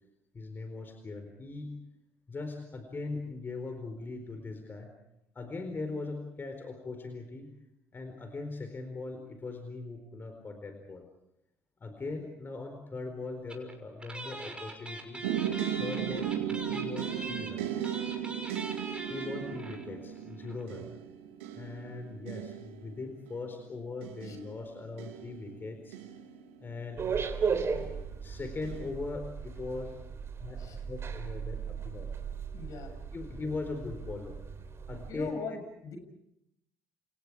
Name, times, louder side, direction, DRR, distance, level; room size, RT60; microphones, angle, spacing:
voice 1, 0.3-1.8 2.3-4.9 5.3-7.5 7.9-11.1 11.8-15.2 15.7-17.9 19.0-20.9 21.5-26.0 26.6-27.0 28.2-30.6 30.9-32.1 33.1-34.4 34.9-35.3, left 3 dB, 30° left, 6 dB, 4.4 m, -40 dB
sound 1, 13.5-13.7 14.0-19.9 20.2-20.3 20.4-20.6, right 2 dB, 15° right, 6.3 m, -42 dB
sound 2, 15.2-27.1 27.8-28.2 28.6-28.9, right 10 dB, 75° right, 2.3 m, -37 dB
sound 3, 27.0-35.1, right 6 dB, 40° right, 3.8 m, -36 dB
voice 2, 32.5-32.9 35.1-36.0, left 4 dB, 55° left, 6 dB, 6.9 m, -40 dB
30.0 x 29.0 x 4.9 m, 0.80 s
hypercardioid pair, 55°, 7 cm